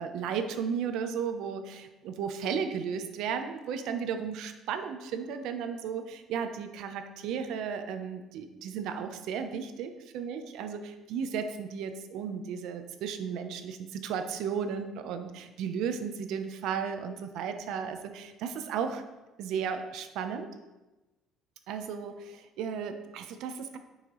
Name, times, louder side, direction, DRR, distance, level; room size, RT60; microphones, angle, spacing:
voice 1, 0.0-19.0 19.4-20.5 21.7-23.8, right 7 dB, 75° right, 8 dB, 0.7 m, -34 dB
9.7 x 5.7 x 3.1 m, 1.1 s
cardioid pair, 130°, 0 cm